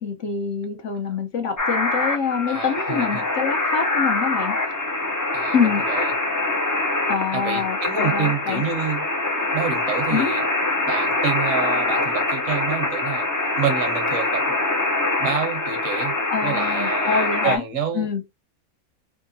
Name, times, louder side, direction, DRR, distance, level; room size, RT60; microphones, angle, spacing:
voice 1, 0.0-4.5 5.5-5.8 7.1-8.6 10.1-10.3 16.3-17.6 17.9-18.2, left 6 dB, 65° left, 1.2 m, -25 dB
sound 1, 1.6-17.6, left 2 dB, 25° left, 0.4 m, -24 dB
voice 2, 2.5-3.2 5.3-5.5 5.9-6.1 7.3-9.1 9.5-10.4 10.8-13.3 13.6-14.6 15.2-16.1 16.4-18.1, right 7 dB, 75° right, 1.3 m, -28 dB
3.6 x 2.8 x 2.6 m
omnidirectional pair, 1.4 m